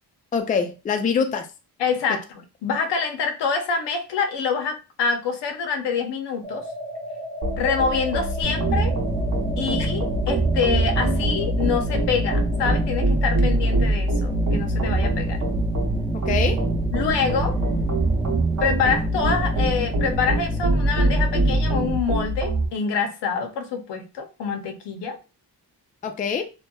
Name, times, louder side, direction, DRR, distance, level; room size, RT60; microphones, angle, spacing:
voice 1, 0.3-1.5 2.1-2.2 16.1-16.6 26.0-26.4, left 6 dB, 20° left, 0.3 m, -24 dB
voice 2, 1.8-6.6 7.6-9.0 9.6-15.4 16.9-17.6 18.6-25.2, left 5 dB, 85° left, 0.7 m, -26 dB
sound 1, 6.4-13.0, equal, 5° left, 1.1 m, -36 dB
sound 2, 7.4-22.7, right 1 dB, 50° right, 0.9 m, -25 dB
sound 3, 8.4-22.0, right 2 dB, 15° right, 0.8 m, -27 dB
2.8 x 2.2 x 2.2 m
cardioid pair, 90°, 40 cm